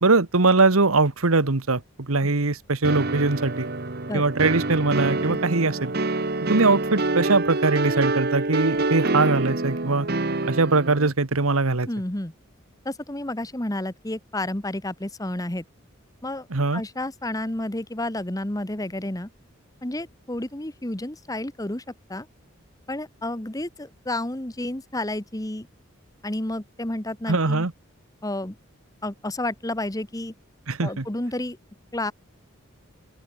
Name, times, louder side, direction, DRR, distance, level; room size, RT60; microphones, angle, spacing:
voice 1, 0.0-3.7 4.1-5.9 6.5-10.1 10.5-11.9 16.5-16.8 27.3-27.7 30.7-31.0, right 3 dB, 90° right, 1.5 m, -21 dB
sound 1, 2.8-11.1, right 2 dB, 45° right, 1.4 m, -26 dB
voice 2, 11.9-12.3 12.8-15.6 16.2-16.5 16.7-19.3 19.8-21.8 22.1-22.3 22.9-25.7 26.2-27.7 28.2-28.6 29.0-30.3 30.8-31.6 31.9-32.1, left 1 dB, 15° left, 1.2 m, -30 dB
open air
head